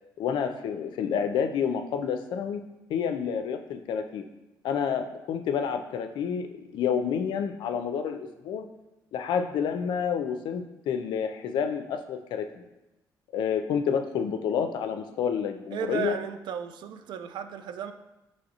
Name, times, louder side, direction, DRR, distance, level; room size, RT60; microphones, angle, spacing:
voice 1, 0.2-2.6 2.9-4.3 4.6-8.7 9.1-12.7 13.3-16.2, left 7 dB, 75° left, 6 dB, 0.4 m, -29 dB
voice 2, 15.7-17.9, right 8 dB, 75° right, 8 dB, 0.3 m, -34 dB
5.7 x 3.0 x 2.8 m, 0.97 s
cardioid pair, 80°, 8 cm